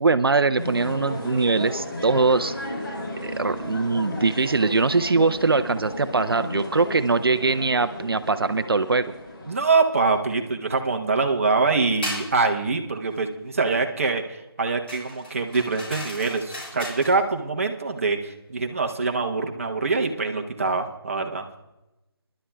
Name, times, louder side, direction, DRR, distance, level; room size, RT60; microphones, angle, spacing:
voice 1, 0.0-2.5 3.2-9.1, right 4 dB, 65° right, 11 dB, 0.6 m, -22 dB
sound 1, 0.6-10.4, left 1 dB, 55° left, 3.9 m, -34 dB
voice 2, 9.5-21.5, right 4 dB, 35° right, 3 dB, 1.0 m, -24 dB
sound 2, 12.0-12.3 14.9-17.1, left 1 dB, 25° left, 5.3 m, -35 dB
28.0 x 11.5 x 2.3 m, 0.96 s
figure-of-eight pair, 170°, 13 cm